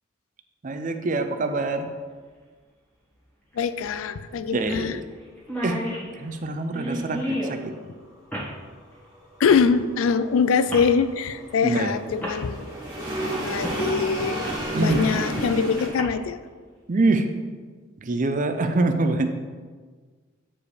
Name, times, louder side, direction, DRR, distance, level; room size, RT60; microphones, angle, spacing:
voice 1, 0.6-1.9 4.5-5.0 5.6-5.8 6.2-7.7 11.6-12.0 14.7-15.0 16.9-17.3 18.0-19.3, right 2 dB, 40° right, 7 dB, 0.5 m, -24 dB
voice 2, 3.5-5.0 9.4-13.1 13.4-14.5 14.8-16.4, left 6 dB, 75° left, 13 dB, 0.4 m, -23 dB
sound 1, 3.5-3.6 4.0-4.1 4.6-4.8 5.1-5.2 5.4-7.6 8.3-8.5 9.5-9.7 10.7-10.9 11.7-11.8 12.2-12.4 13.6-13.8 14.2-15.2 15.8-16.0, equal, 10° left, 1.4 m, -32 dB
sound 2, 9.0-15.9, right 1 dB, 20° right, 2.0 m, -32 dB
8.6 x 4.9 x 3.2 m, 1.5 s
head